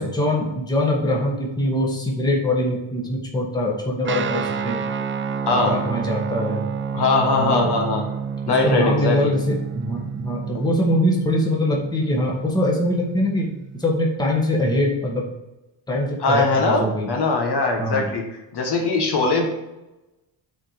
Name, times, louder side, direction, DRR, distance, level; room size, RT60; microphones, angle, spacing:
voice 1, 0.0-4.8 5.6-6.6 7.4-7.7 8.6-13.5 13.7-15.3 15.9-17.1 17.8-18.1, left 1 dB, 10° left, -2 dB, 1.4 m, -23 dB
Guitar, 4.0-13.9, right 6 dB, 30° right, 0.3 m, -30 dB
voice 2, 5.4-5.7 6.9-8.1 8.5-9.3 10.5-10.7 16.2-18.2 18.5-19.5, left 3 dB, 55° left, 2 dB, 1.4 m, -21 dB
7.4 x 4.2 x 5.0 m, 0.99 s
cardioid pair, 140°, 47 cm